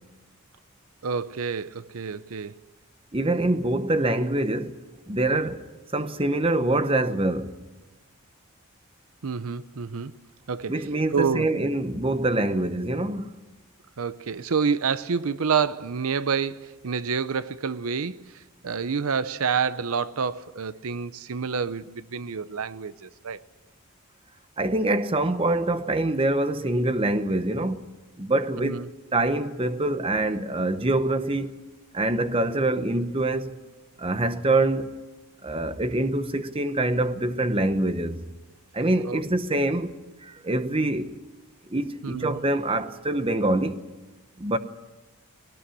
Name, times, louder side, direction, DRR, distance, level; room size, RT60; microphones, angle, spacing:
voice 1, 1.0-2.5 9.2-10.1 10.5-10.8 11.1-11.5 14.0-23.4 28.6-28.9 39.0-39.3 42.0-42.4, right 6 dB, 75° right, 0.6 m, -28 dB
voice 2, 3.1-4.8 5.1-5.7 5.9-7.6 10.7-13.3 24.6-28.8 29.1-31.6 31.9-33.6 34.0-34.9 35.4-38.2 38.7-39.9 40.2-41.2 41.7-43.8 44.4-44.6, right 2 dB, 25° right, 0.9 m, -25 dB
20.5 x 18.5 x 9.9 m
head